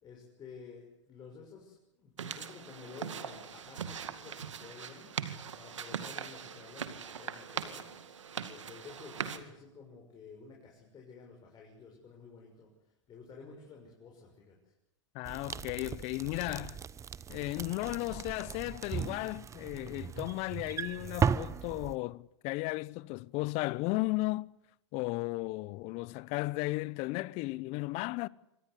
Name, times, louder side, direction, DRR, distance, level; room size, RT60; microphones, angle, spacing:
voice 1, 0.0-5.1 5.6-7.9 8.4-12.7 13.1-14.6, left 5 dB, 25° left, 6.8 m, -51 dB
sound 1, 2.2-9.4, right 7 dB, 90° right, 2.2 m, -41 dB
voice 2, 15.1-16.8 17.3-24.5 24.9-28.3, left 21 dB, 45° left, 0.8 m, -35 dB
sound 2, 15.3-21.9, right 7 dB, 20° right, 0.9 m, -36 dB
25.5 x 19.0 x 8.2 m
hypercardioid pair, 115°, 15 cm